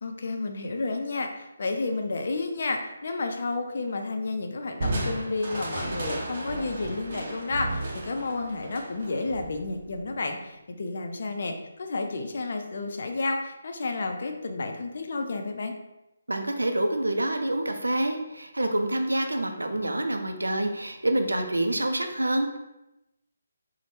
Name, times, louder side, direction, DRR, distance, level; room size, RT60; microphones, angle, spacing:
voice 1, 0.0-15.7, left 3 dB, 55° left, 4 dB, 0.4 m, -31 dB
Crushing, 4.8-10.2, right 2 dB, 45° right, 0.6 m, -34 dB
voice 2, 16.3-22.6, right 1 dB, 85° right, 5 dB, 0.4 m, -27 dB
2.7 x 2.0 x 3.2 m, 0.94 s
figure-of-eight pair, 150°, 0 cm